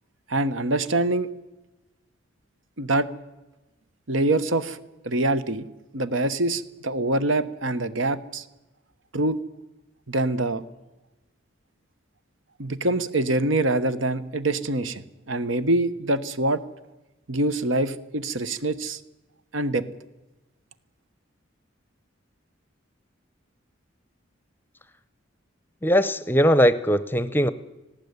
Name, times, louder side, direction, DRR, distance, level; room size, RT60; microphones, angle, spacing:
voice 1, 0.3-1.3 2.8-3.1 4.1-4.8 5.0-5.7 5.9-8.4 9.1-9.4 10.1-10.6 12.6-16.6 17.3-19.0 19.5-19.9, right 2 dB, 75° right, 13 dB, 1.2 m, -25 dB
voice 2, 25.8-27.5, equal, 10° left, 15 dB, 0.7 m, -20 dB
19.0 x 16.0 x 9.6 m, 1.0 s
head